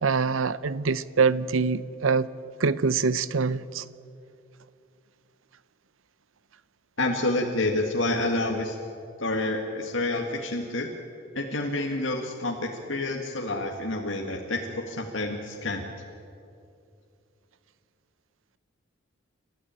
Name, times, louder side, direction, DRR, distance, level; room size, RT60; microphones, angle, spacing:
voice 1, 0.0-2.3 2.6-3.8, right 5 dB, 85° right, 0.7 m, -24 dB
voice 2, 7.0-8.8 9.2-10.9 11.3-14.6 14.9-15.8, left 2 dB, 75° left, 1.8 m, -28 dB
30.0 x 14.0 x 8.9 m
head